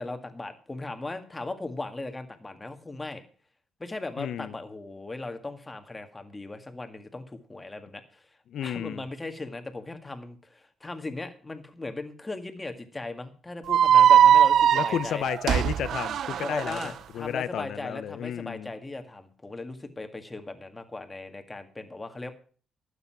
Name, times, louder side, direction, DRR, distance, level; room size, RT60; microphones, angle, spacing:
voice 1, 0.0-3.2 3.8-8.2 8.6-15.2 16.4-22.3, left 2 dB, 20° left, 1.9 m, -38 dB
voice 2, 4.2-4.6 8.5-9.0 14.7-18.7, left 10 dB, 70° left, 0.7 m, -32 dB
sound 1, 13.7-16.9, right 9 dB, 70° right, 0.4 m, -20 dB
12.5 x 8.5 x 5.8 m
cardioid pair, 90°, 0 cm